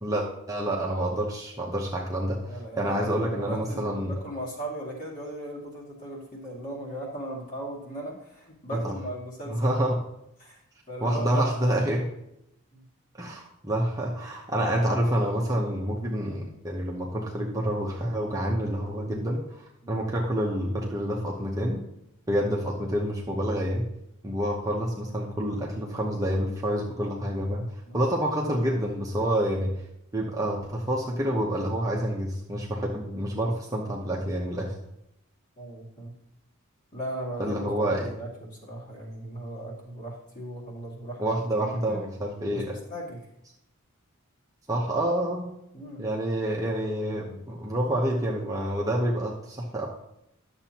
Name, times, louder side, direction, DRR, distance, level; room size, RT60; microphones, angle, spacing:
voice 1, 0.0-2.4 2.8-4.1 8.8-8.9 9.5-10.0 11.0-12.1 13.2-19.6 19.9-21.8 22.3-23.9 24.2-27.7 27.9-29.8 30.1-34.7 37.4-38.1 41.2-42.8 44.7-45.5 46.0-49.9, right 1 dB, 15° right, -2 dB, 0.9 m, -28 dB
voice 2, 2.5-9.7 10.4-10.6 10.9-11.8 12.7-12.8 19.8-20.0 27.8-28.0 35.6-36.1 36.9-41.2 41.6-42.0 42.5-42.6 42.9-43.2 45.7-46.1, right 1 dB, 35° left, -3 dB, 2.2 m, -37 dB
11.0 x 7.0 x 2.9 m, 0.81 s
head